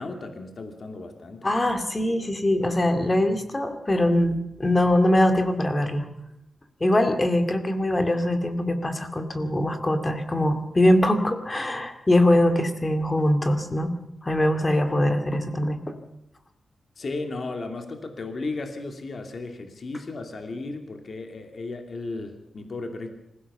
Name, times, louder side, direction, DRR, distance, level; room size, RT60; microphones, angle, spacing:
voice 1, 0.0-1.5 17.0-23.1, left 3 dB, 45° left, 4 dB, 2.7 m, -35 dB
voice 2, 1.4-6.1 6.8-13.9 14.2-15.8, left 1 dB, 20° left, 7 dB, 2.3 m, -22 dB
26.0 x 16.5 x 7.0 m, 0.81 s
wide cardioid pair, 155°, 0 cm